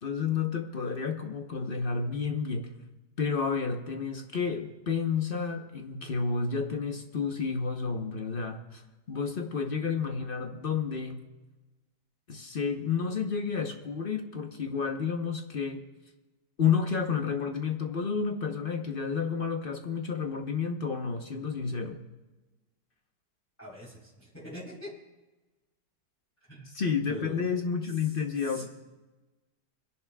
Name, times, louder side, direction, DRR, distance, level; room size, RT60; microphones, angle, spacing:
voice 1, 0.0-2.7 3.2-8.8 9.1-11.2 12.3-15.8 16.6-22.0 26.7-28.6, left 6 dB, 40° left, 4 dB, 0.8 m, -30 dB
voice 2, 23.6-24.9 26.5-26.7 27.1-27.7 28.4-28.6, left 1 dB, 10° left, -5 dB, 3.5 m, -43 dB
28.5 x 10.5 x 2.3 m, 1.1 s
omnidirectional pair, 1.9 m